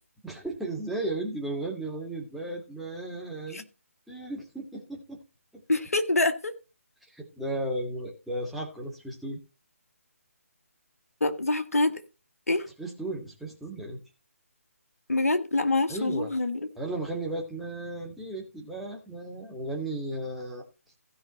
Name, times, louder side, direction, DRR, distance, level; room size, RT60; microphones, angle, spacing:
voice 1, 0.2-3.7 4.1-5.2 5.5-5.6 7.2-9.4 12.8-14.0 15.9-16.3 16.8-20.6, right 2 dB, ahead, 1.9 m, -35 dB
voice 2, 5.7-6.5 11.2-12.0 12.5-12.7 15.1-16.6, left 2 dB, 75° left, 1.6 m, -25 dB
16.0 x 5.4 x 4.2 m
figure-of-eight pair, 150°, 8 cm